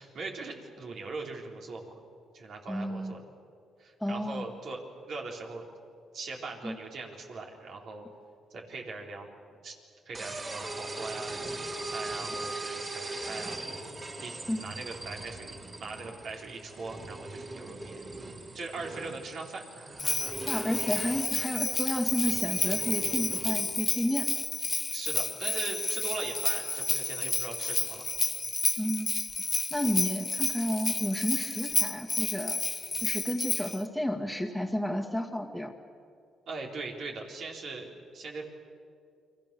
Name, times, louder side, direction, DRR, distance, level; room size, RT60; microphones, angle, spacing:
voice 1, 0.0-2.0 2.3-3.2 3.8-5.6 6.1-8.1 8.5-9.3 9.6-9.8 10.1-13.6 14.2-14.3 14.6-18.0 18.5-20.4 24.9-28.1 36.5-38.5, right 3 dB, 65° right, 1 dB, 4.0 m, -40 dB
voice 2, 2.7-3.1 4.0-4.4 6.6-6.8 14.5-14.6 20.5-24.3 28.8-29.1 29.7-32.6 33.0-35.7, left 1 dB, ahead, 2 dB, 2.1 m, -31 dB
sound 1, 10.1-23.6, right 2 dB, 35° right, 3.7 m, -40 dB
Bell, 20.0-33.8, left 3 dB, 25° left, 0.8 m, -31 dB
29.0 x 23.0 x 7.0 m, 2.3 s
cardioid pair, 90°, 0 cm